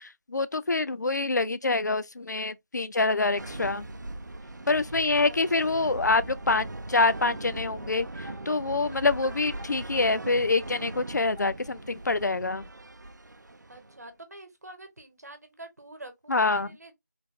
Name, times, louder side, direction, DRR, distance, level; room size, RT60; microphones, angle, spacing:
voice 1, 0.0-3.9 4.7-8.1 8.5-12.6 16.3-16.7, left 3 dB, 70° left, 0.4 m, -26 dB
sound 1, 3.4-14.1, right 2 dB, 75° right, 0.5 m, -40 dB
voice 2, 4.9-6.0 13.7-16.9, right 2 dB, 60° right, 1.0 m, -47 dB
sound 2, 5.9-12.1, equal, 10° left, 0.7 m, -48 dB
3.4 x 3.0 x 2.2 m
figure-of-eight pair, 175°, 10 cm